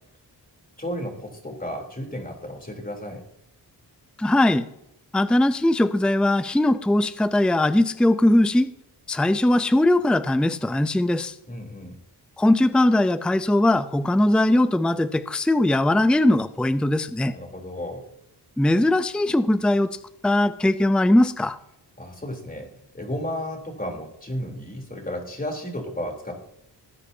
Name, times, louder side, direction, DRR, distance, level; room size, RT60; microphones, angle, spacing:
voice 1, 0.8-3.3 11.5-12.0 17.2-18.1 22.0-26.4, equal, 20° left, 2 dB, 3.5 m, -33 dB
voice 2, 4.2-4.7 5.1-8.7 9.1-11.3 12.4-17.3 18.6-19.9 20.2-21.6, left 1 dB, ahead, 13 dB, 0.5 m, -20 dB
18.5 x 9.8 x 2.8 m, 0.82 s
cardioid pair, 60°, 42 cm